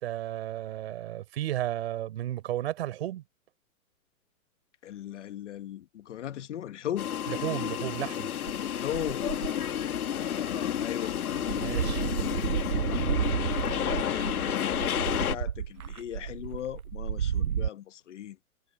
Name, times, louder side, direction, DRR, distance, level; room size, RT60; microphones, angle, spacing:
voice 1, 0.0-3.2 7.3-8.3 11.5-12.0, right 13 dB, 45° right, 5.0 m, -33 dB
voice 2, 4.8-7.1 8.5-9.3 10.1-11.2 12.9-13.1 14.0-18.4, left 11 dB, 55° left, 1.3 m, -38 dB
sound 1, 7.0-15.4, left 9 dB, 80° left, 2.2 m, -31 dB
sound 2, 8.5-9.7 10.4-10.5 10.8-17.7, right 8 dB, 75° right, 6.2 m, -32 dB
hypercardioid pair, 170°, 44 cm